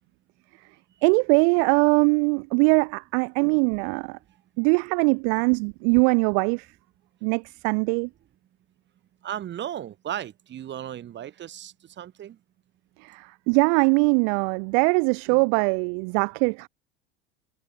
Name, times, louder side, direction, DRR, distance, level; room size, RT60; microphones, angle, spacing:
voice 1, 1.0-4.2 4.6-6.7 7.2-8.1 13.0-16.7, right 40 dB or more, 55° right, 0.6 m, -22 dB
voice 2, 9.2-12.4, right 11 dB, 35° right, 1.8 m, -35 dB
figure-of-eight pair, 75°, 31 cm